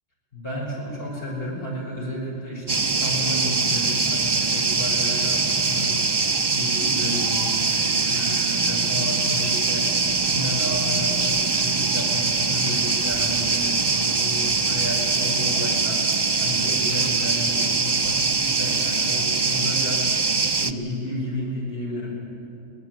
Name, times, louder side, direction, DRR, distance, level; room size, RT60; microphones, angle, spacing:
voice 1, 0.3-22.1, left 1 dB, 45° left, -3 dB, 6.7 m, -32 dB
sound 1, 2.7-20.7, right 4 dB, 30° right, 0.4 m, -23 dB
22.5 x 18.5 x 9.6 m, 2.7 s
omnidirectional pair, 1.4 m